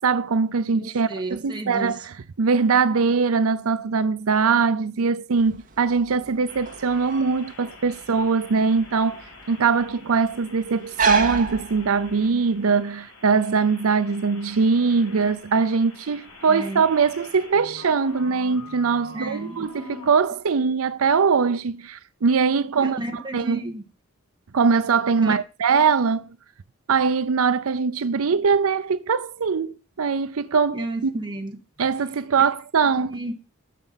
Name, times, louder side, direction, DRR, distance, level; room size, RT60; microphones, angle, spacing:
voice 1, 0.0-23.6 24.5-26.3 26.9-31.1 31.8-33.2, right 5 dB, 75° right, 0.5 m, -22 dB
voice 2, 0.7-1.9 16.5-16.8 19.1-19.6 22.8-23.8 25.2-25.3 30.7-31.6 32.9-33.3, right 2 dB, 20° right, 2.0 m, -32 dB
sound 1, 5.4-12.3, right 4 dB, 40° right, 2.2 m, -30 dB
sound 2, 6.5-20.2, left 3 dB, 85° left, 6.3 m, -46 dB
12.5 x 6.7 x 5.7 m
head